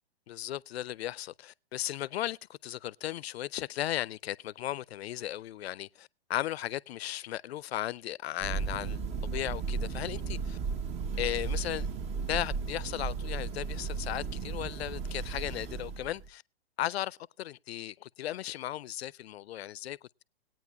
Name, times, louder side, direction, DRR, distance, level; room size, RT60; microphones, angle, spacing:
voice 1, 0.3-10.6 11.2-11.9 12.3-16.4 16.8-20.2, left 13 dB, 75° left, 0.5 m, -36 dB
Thunder, 8.4-16.3, right 5 dB, 20° right, 0.6 m, -35 dB
21.0 x 9.1 x 2.3 m
hypercardioid pair, 125°, 32 cm